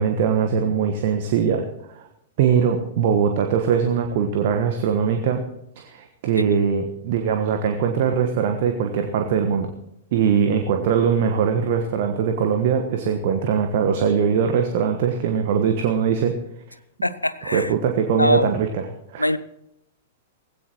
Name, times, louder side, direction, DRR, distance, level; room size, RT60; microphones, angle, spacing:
voice 1, 0.0-2.0 2.4-5.4 5.8-9.7 10.1-16.3 17.4-18.9 19.1-19.3, right 7 dB, 45° right, 5 dB, 1.4 m, -21 dB
voice 2, 17.0-17.7 18.1-18.5 19.2-19.4, left 1 dB, 85° left, 15 dB, 0.7 m, -22 dB
18.5 x 16.5 x 3.0 m, 0.82 s
figure-of-eight pair, 100°, 0 cm